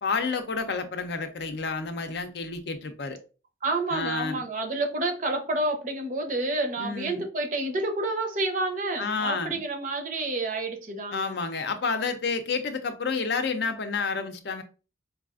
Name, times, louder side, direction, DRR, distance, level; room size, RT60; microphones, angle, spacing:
voice 1, 0.0-3.2 3.9-4.4 6.8-7.2 9.0-9.6 11.1-14.6, left 4 dB, 60° left, 0.5 m, -30 dB
voice 2, 3.6-11.4, right 2 dB, 45° right, 0.6 m, -29 dB
4.6 x 2.4 x 2.4 m
head